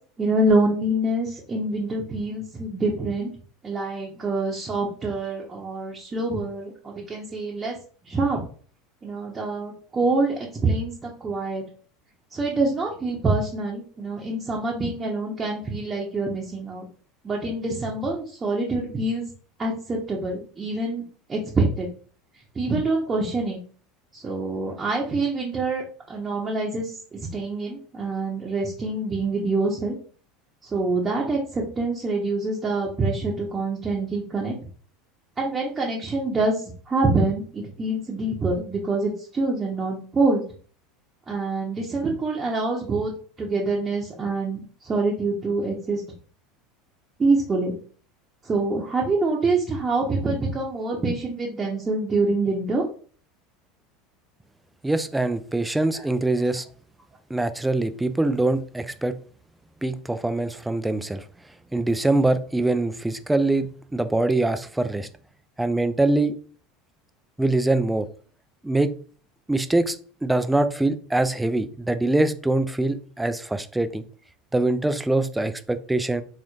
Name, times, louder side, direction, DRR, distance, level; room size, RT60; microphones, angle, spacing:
voice 1, 0.2-3.3 3.6-7.8 8.0-8.4 9.0-11.6 12.3-16.9 17.2-19.2 19.6-21.0 21.3-21.9 22.5-23.6 24.1-30.0 30.6-34.5 35.4-40.4 41.3-43.1 43.4-46.0 47.2-47.7 48.4-52.8 55.9-56.1, right 2 dB, 25° right, -2 dB, 0.9 m, -25 dB
voice 2, 54.8-56.7 57.3-59.1 59.8-61.2 61.7-65.1 65.6-66.3 67.4-68.0 68.6-68.9 69.5-70.0 70.2-74.0 74.5-76.2, right 2 dB, 10° right, 10 dB, 0.4 m, -23 dB
4.0 x 3.0 x 2.4 m, 0.43 s
figure-of-eight pair, 75°, 0 cm